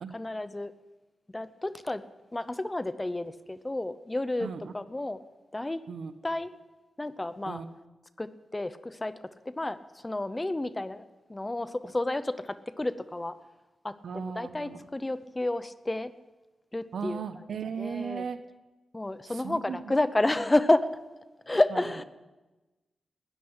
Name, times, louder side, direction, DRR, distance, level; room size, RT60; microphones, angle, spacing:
voice 1, 0.1-0.7 1.3-2.0 2.3-4.5 4.7-5.2 5.5-5.8 6.2-6.5 7.0-7.6 8.2-9.1 9.5-9.8 10.0-11.0 11.3-13.3 13.8-13.9 14.2-16.1 16.7-17.2 17.8-18.2 18.9-20.9 21.5-22.0, left 2 dB, 20° left, 14 dB, 0.8 m, -30 dB
voice 2, 4.4-4.8 5.6-6.1 7.4-7.7 14.0-14.9 16.9-18.4 19.3-19.9 21.7-21.8, right 6 dB, 80° right, 9 dB, 1.1 m, -37 dB
13.5 x 10.0 x 9.7 m, 1.2 s
cardioid pair, 80°, 0 cm